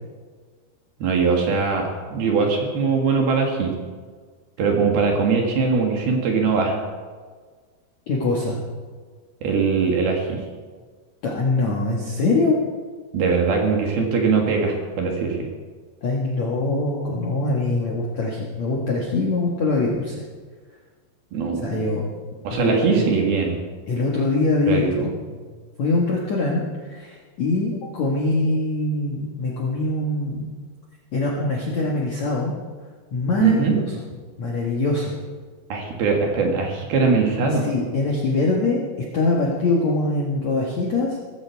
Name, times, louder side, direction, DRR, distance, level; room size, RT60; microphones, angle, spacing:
voice 1, 1.0-3.7 4.6-6.8 9.4-10.4 13.1-15.5 21.3-21.8 22.4-23.6 24.7-25.4 33.4-33.7 35.7-37.7, right 4 dB, 60° right, 1 dB, 3.4 m, -21 dB
voice 2, 8.1-8.6 11.2-12.6 16.0-20.1 21.6-22.0 22.5-23.1 23.9-25.1 25.8-30.5 31.1-32.5 33.1-33.8 34.4-35.1 37.6-38.8 39.1-41.2, left 2 dB, 60° left, -3 dB, 1.9 m, -23 dB
17.0 x 15.5 x 4.6 m, 1.5 s
omnidirectional pair, 5.5 m